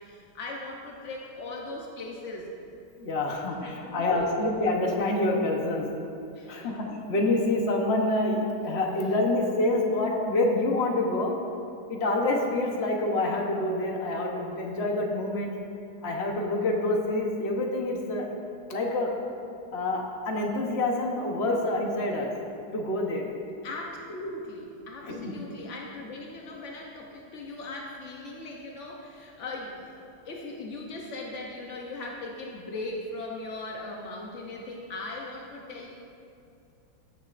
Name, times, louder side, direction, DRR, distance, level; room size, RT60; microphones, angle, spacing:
voice 1, 0.0-2.5 3.6-4.4 6.3-6.7 23.6-35.9, left 2 dB, 80° left, 0 dB, 0.6 m, -39 dB
voice 2, 3.0-5.8 6.5-11.3 11.9-15.5 16.0-18.3 18.7-19.1 19.7-22.3 22.7-23.2 25.0-25.3, left 2 dB, 45° left, 0 dB, 0.8 m, -27 dB
15.0 x 7.1 x 2.5 m, 2.5 s
omnidirectional pair, 2.3 m